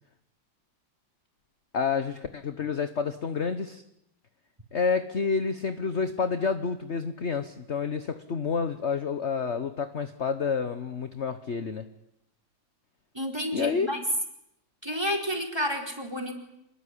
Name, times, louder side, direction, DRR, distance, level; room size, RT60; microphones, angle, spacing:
voice 1, 1.7-3.8 4.7-11.9 13.5-13.9, left 5 dB, 40° left, 10 dB, 1.1 m, -29 dB
voice 2, 13.1-14.0 14.8-16.3, equal, 10° right, 4 dB, 4.4 m, -30 dB
26.5 x 21.0 x 9.9 m, 0.79 s
omnidirectional pair, 2.3 m